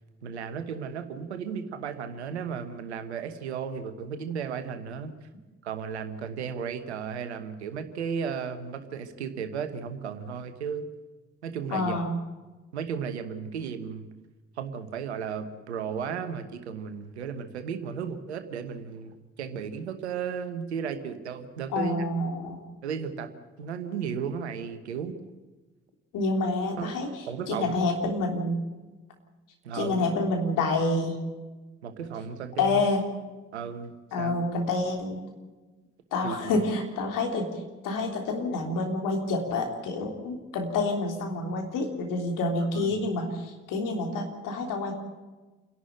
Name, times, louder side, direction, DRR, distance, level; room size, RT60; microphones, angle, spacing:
voice 1, 0.2-5.1 5.6-10.9 11.4-12.0 12.7-14.1 14.6-22.0 22.8-23.3 23.6-25.2 26.8-26.9 27.3-27.8 29.6-30.0 31.8-32.8 33.5-34.4 36.2-36.6 42.6-42.9, right 7 dB, 90° right, 9 dB, 1.2 m, -34 dB
voice 2, 11.7-12.2 21.7-22.6 26.1-27.1 27.5-28.6 29.7-31.1 32.6-33.1 34.1-35.2 36.1-37.5 37.8-44.9, left 2 dB, 70° left, 2 dB, 3.5 m, -28 dB
28.0 x 11.5 x 9.0 m, 1.2 s
hypercardioid pair, 40°, 33 cm